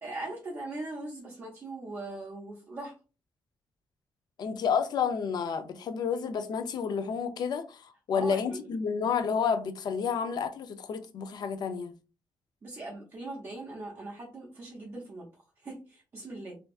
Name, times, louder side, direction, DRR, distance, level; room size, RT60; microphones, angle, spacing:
voice 1, 0.0-2.9 8.1-8.7 12.6-16.6, right 2 dB, 30° right, 0.6 m, -40 dB
voice 2, 4.4-11.9, left 6 dB, 60° left, 0.4 m, -30 dB
2.5 x 2.3 x 2.3 m
cardioid pair, 135°, 8 cm